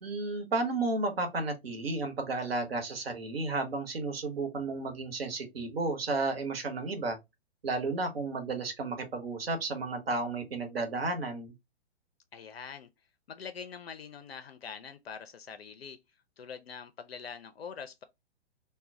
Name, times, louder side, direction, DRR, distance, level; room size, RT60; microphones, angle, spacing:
voice 1, 0.0-7.2 7.6-11.5, right 3 dB, 60° right, 0.9 m, -32 dB
voice 2, 12.3-12.9 13.3-16.0 16.4-18.0, left 6 dB, 65° left, 0.5 m, -44 dB
2.1 x 2.1 x 3.7 m
figure-of-eight pair, 120°, 33 cm